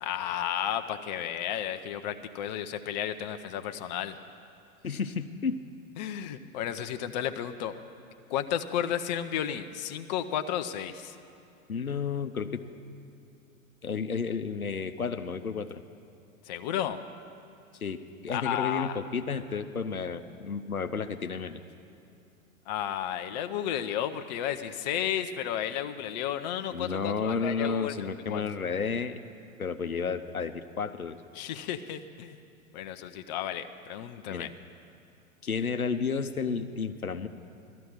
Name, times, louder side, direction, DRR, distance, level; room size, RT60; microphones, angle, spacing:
voice 1, 0.0-4.2 6.0-7.8 8.3-11.1 16.5-17.0 18.3-19.0 22.7-28.4 31.3-32.4 32.7-34.5, left 10 dB, 30° left, 8 dB, 0.6 m, -33 dB
voice 2, 4.8-5.6 11.7-12.6 13.8-15.8 17.8-21.6 26.7-29.2 29.6-31.2 34.3-34.5 35.4-37.3, left 5 dB, 85° left, 10 dB, 0.7 m, -32 dB
17.0 x 13.0 x 4.8 m, 2.7 s
figure-of-eight pair, 100°, 42 cm